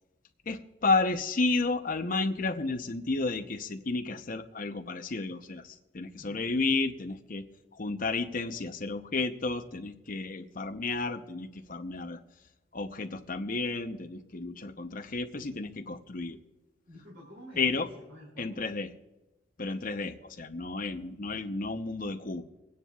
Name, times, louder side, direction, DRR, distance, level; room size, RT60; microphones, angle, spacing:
voice 1, 0.5-12.2 12.7-16.4 17.6-17.9 18.4-18.9 19.6-22.4, left 3 dB, 45° left, 7 dB, 0.8 m, -32 dB
voice 2, 6.2-6.7 16.9-18.6, equal, 80° right, -3 dB, 3.2 m, -50 dB
25.5 x 9.6 x 2.4 m, 1.0 s
head